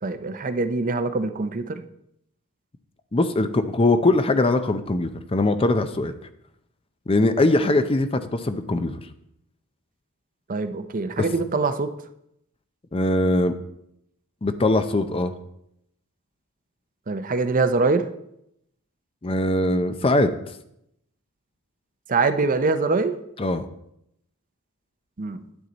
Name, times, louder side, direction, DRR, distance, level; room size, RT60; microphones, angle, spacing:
voice 1, 0.0-1.8 10.5-11.9 17.1-18.0 22.1-23.1 25.2-25.4, right 3 dB, 35° right, 9 dB, 0.6 m, -23 dB
voice 2, 3.1-6.1 7.1-9.0 12.9-13.5 14.4-15.3 19.2-20.3 23.4-23.7, left 2 dB, 25° left, 10 dB, 0.5 m, -21 dB
9.5 x 8.7 x 4.0 m, 0.78 s
head